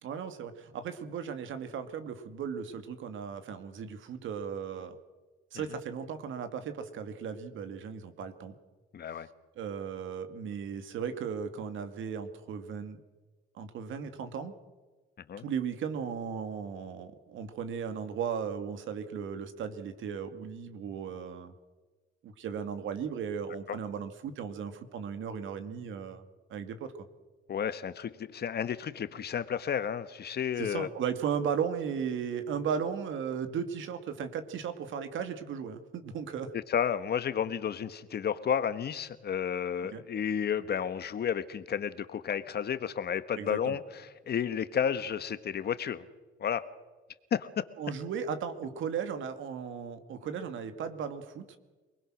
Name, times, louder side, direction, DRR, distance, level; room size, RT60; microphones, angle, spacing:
voice 1, 0.0-5.0 5.5-8.6 9.6-13.0 13.5-14.5 15.4-21.5 22.2-26.2 26.5-26.9 30.6-36.5 39.9-40.0 43.3-43.8 47.8-51.6, right 7 dB, 75° right, 9 dB, 2.4 m, -36 dB
voice 2, 8.9-9.3 15.3-15.4 23.7-23.8 27.5-30.9 36.7-43.8 44.3-46.0 46.4-46.6 47.3-47.6, left 8 dB, 55° left, 13 dB, 1.4 m, -32 dB
26.5 x 20.5 x 6.4 m, 1.3 s
cardioid pair, 90°, 20 cm